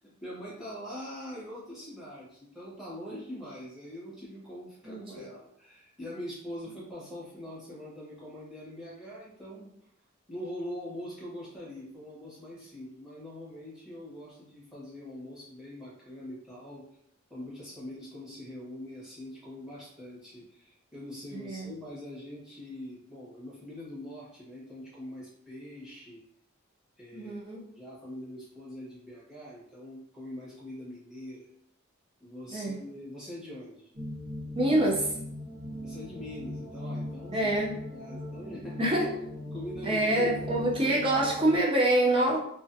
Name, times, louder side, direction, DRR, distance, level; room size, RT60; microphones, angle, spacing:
voice 1, 0.0-9.7 10.3-16.9 17.3-26.2 27.0-27.4 27.8-31.5 32.2-33.9 35.8-37.5 37.9-38.9 39.5-41.0, left 1 dB, ahead, -8 dB, 0.9 m, -43 dB
voice 2, 4.8-5.2 21.3-21.7 27.1-27.7 32.5-32.8 34.5-35.1 37.3-37.7 38.8-39.2 39.8-42.4, right 1 dB, 25° right, -1 dB, 0.4 m, -26 dB
sound 1, 33.9-41.6, left 1 dB, 60° right, 1.3 m, -40 dB
2.4 x 2.3 x 2.5 m, 0.71 s
head